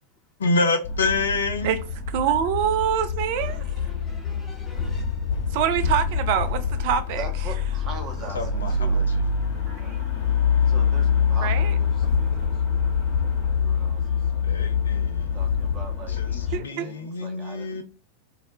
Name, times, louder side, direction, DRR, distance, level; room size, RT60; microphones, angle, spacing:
voice 1, 0.4-1.7 8.4-9.2 14.4-15.4 16.1-17.8, left 3 dB, 70° left, 0.4 m, -27 dB
sound 1, 0.8-16.6, left 6 dB, 50° left, 1.0 m, -25 dB
voice 2, 2.1-3.6 5.5-7.3 11.4-11.7 16.5-16.9, right 9 dB, 50° right, 0.3 m, -25 dB
voice 3, 3.4-5.6, left 2 dB, 15° left, 0.9 m, -43 dB
voice 4, 7.2-9.0 9.7-10.0 10.7-14.5 15.3-17.8, right 3 dB, 30° right, 0.8 m, -42 dB
2.2 x 2.1 x 2.8 m
figure-of-eight pair, 90°, 0 cm